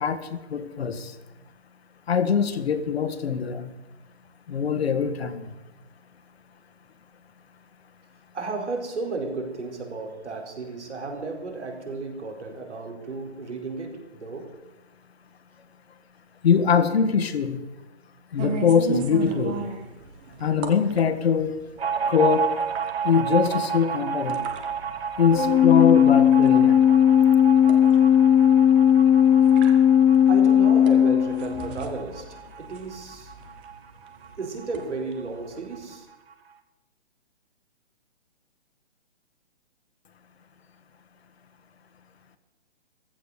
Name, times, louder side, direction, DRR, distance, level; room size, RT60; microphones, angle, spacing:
voice 1, 0.0-1.1 2.1-3.7 4.5-5.5 16.4-17.6 18.3-19.6 20.4-21.5 22.1-22.5 23.0-24.4 25.2-26.8, left 6 dB, 65° left, 9 dB, 1.6 m, -23 dB
voice 2, 8.3-14.5 30.3-33.3 34.4-36.1, right 3 dB, 80° right, 2 dB, 4.4 m, -34 dB
sound 1, 18.4-35.9, right 4 dB, 10° right, 0.5 m, -38 dB
sound 2, 21.8-34.9 35.2-35.3 35.6-36.3, right 7 dB, 60° right, 1.9 m, -32 dB
Organ, 25.3-31.9, left 9 dB, 10° left, 0.8 m, -17 dB
15.0 x 13.5 x 6.7 m, 1.0 s
hypercardioid pair, 150°, 34 cm